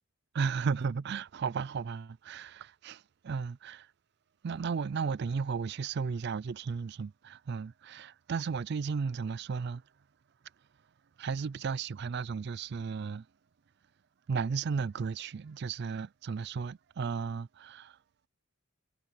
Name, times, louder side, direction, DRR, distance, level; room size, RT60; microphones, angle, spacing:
voice 1, 0.3-3.9 4.4-9.8 11.2-13.3 14.3-18.0, right 5 dB, 50° right, 0.3 m, -34 dB
head